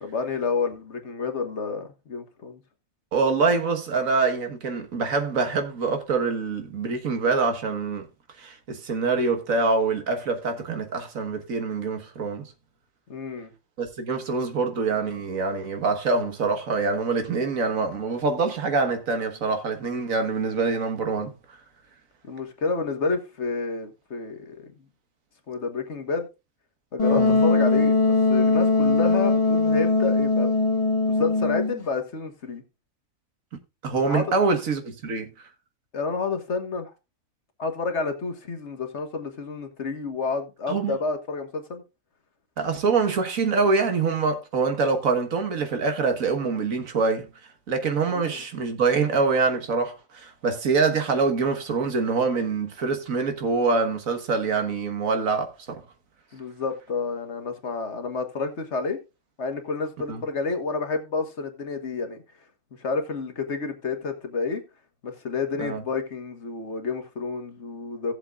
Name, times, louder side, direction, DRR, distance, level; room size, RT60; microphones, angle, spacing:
voice 1, 0.0-2.6 13.1-13.5 22.2-24.7 25.5-26.3 26.9-30.5 31.2-32.6 34.1-34.2 35.9-36.9 37.6-41.8 48.1-48.4 56.3-59.0 59.4-62.2 62.8-64.6 65.0-68.1, left 4 dB, 60° left, 1.7 m, -29 dB
voice 2, 3.1-8.1 8.4-12.5 13.8-21.3 27.2-27.3 33.8-35.5 40.7-41.0 42.6-47.3 47.7-55.8 60.1-60.2 65.6-65.8, right 4 dB, 90° right, 1.8 m, -25 dB
Wind instrument woodwind instrument, 27.0-31.8, left 3 dB, 30° left, 1.1 m, -21 dB
17.0 x 7.4 x 2.4 m
omnidirectional pair, 1.4 m